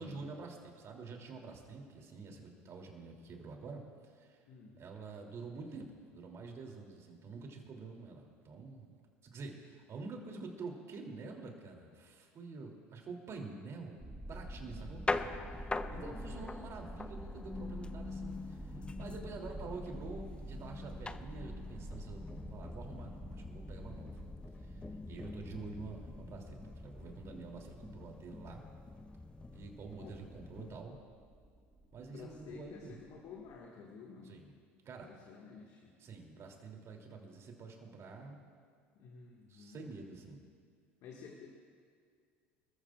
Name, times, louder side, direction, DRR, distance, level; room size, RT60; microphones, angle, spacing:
voice 1, 0.0-4.4 4.8-8.9 9.2-15.6 15.9-24.2 24.6-24.8 25.1-28.6 29.5-31.0 31.9-32.9 34.2-34.6 34.8-35.1 36.0-38.4 39.5-40.4, right 4 dB, 40° right, 1 dB, 3.1 m, -48 dB
voice 2, 4.5-4.8 15.9-16.4 30.0-30.2 32.0-34.4 35.1-36.0 39.0-39.8 41.0-41.5, left 5 dB, 55° left, -1 dB, 2.0 m, -52 dB
sound 1, 14.0-33.6, right 1 dB, 5° right, 1.6 m, -49 dB
sound 2, 14.7-30.8, left 3 dB, 15° left, 0.6 m, -44 dB
26.5 x 14.0 x 2.5 m, 2.2 s
hypercardioid pair, 75°, 7 cm